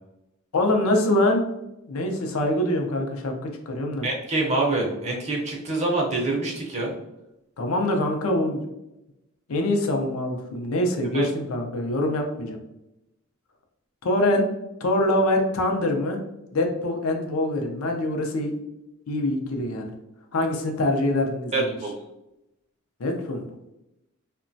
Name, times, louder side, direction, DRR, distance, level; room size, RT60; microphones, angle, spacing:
voice 1, 0.5-1.4 1.9-4.1 7.6-8.6 9.5-12.6 14.0-14.5 14.8-16.2 16.5-18.5 19.1-19.9 20.3-21.6 23.0-23.5, left 1 dB, 75° left, 3 dB, 0.5 m, -24 dB
voice 2, 4.0-6.9 11.1-11.3 21.5-21.9, right 2 dB, 30° right, -1 dB, 0.5 m, -25 dB
2.9 x 2.2 x 2.5 m, 0.90 s
head